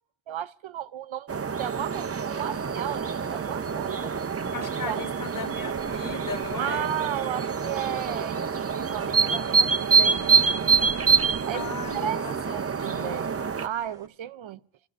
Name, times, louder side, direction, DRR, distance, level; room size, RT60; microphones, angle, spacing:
voice 1, 0.3-4.1 4.9-5.0 6.6-10.7 11.2-12.2 12.5-13.3 13.6-14.6, right 10 dB, 85° right, 0.6 m, -34 dB
sound 1, 1.3-13.7, right 5 dB, 35° right, 0.5 m, -26 dB
sound 2, 2.7-14.1, right 1 dB, 10° right, 1.1 m, -51 dB
voice 2, 4.5-6.9 11.5-12.3 12.8-13.2, left 6 dB, 45° left, 0.6 m, -37 dB
28.5 x 15.5 x 2.5 m
wide cardioid pair, 70°, 45 cm